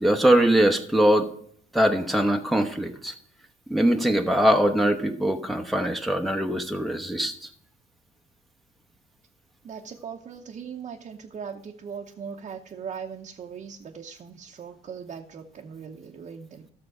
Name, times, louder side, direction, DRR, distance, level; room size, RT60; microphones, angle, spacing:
voice 1, 0.0-1.3 1.7-3.1 3.7-7.5, right 1 dB, ahead, 4 dB, 0.9 m, -22 dB
voice 2, 9.6-16.7, right 7 dB, 45° right, 1 dB, 0.9 m, -39 dB
13.5 x 6.7 x 4.9 m, 0.64 s
cardioid pair, 110°, 17 cm